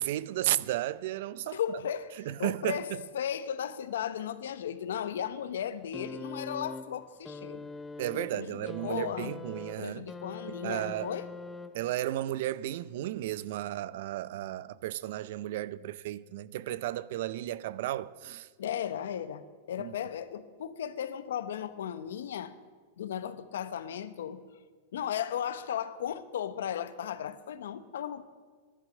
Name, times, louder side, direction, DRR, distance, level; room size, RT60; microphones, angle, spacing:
voice 1, 0.0-1.8 2.2-3.0 8.0-10.1 10.5-11.1 11.7-18.5 19.8-19.9, right 14 dB, 65° right, 0.5 m, -34 dB
voice 2, 1.5-2.1 2.4-7.7 8.1-9.4 9.8-11.3 18.6-22.5 23.0-24.4 24.9-28.2, left 9 dB, 90° left, 0.9 m, -36 dB
sound 1, 5.9-12.1 13.1-13.3, left 3 dB, 10° left, 0.6 m, -43 dB
11.5 x 11.0 x 7.5 m
supercardioid pair, 140°, 0 cm